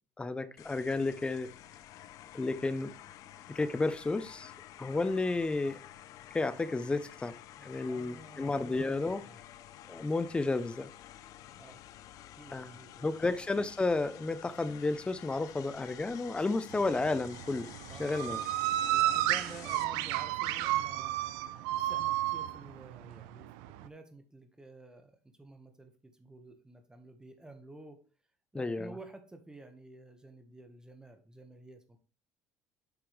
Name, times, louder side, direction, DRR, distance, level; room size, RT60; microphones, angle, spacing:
voice 1, 0.2-1.5 2.3-2.9 3.5-4.5 4.8-5.8 6.3-7.3 7.6-9.2 9.9-10.9 12.5-12.8 13.0-17.7 18.0-18.4 28.5-28.9, left 3 dB, 15° left, 0.8 m, -32 dB
sound 1, 0.6-19.8, left 12 dB, 65° left, 0.6 m, -51 dB
voice 2, 7.9-8.5 9.2-9.4 11.6-11.8 12.3-13.3 17.9-21.1 21.7-23.5 23.8-28.0 28.5-32.0, right 2 dB, 10° right, 1.5 m, -51 dB
sound 2, 16.7-23.9, right 14 dB, 85° right, 0.5 m, -32 dB
8.1 x 5.9 x 3.4 m
supercardioid pair, 90°, 6 cm